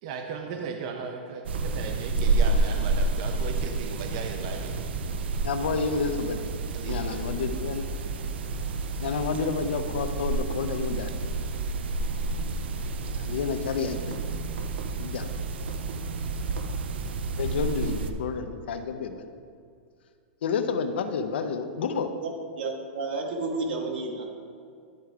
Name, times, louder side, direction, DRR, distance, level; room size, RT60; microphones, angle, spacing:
voice 1, 0.0-4.7 6.7-7.2, right 5 dB, 35° right, 4 dB, 0.5 m, -36 dB
sound 1, 1.4-18.1, right 3 dB, 90° right, 0.7 m, -30 dB
voice 2, 5.4-6.4 6.8-7.9 9.0-11.1 13.2-14.2 15.0-15.3 17.3-19.2 20.4-22.1, left 5 dB, 85° left, 8 dB, 0.7 m, -30 dB
voice 3, 22.6-24.2, right 3 dB, 65° right, 0 dB, 1.7 m, -31 dB
11.0 x 4.6 x 4.9 m, 2.3 s
supercardioid pair, 180°, 6 cm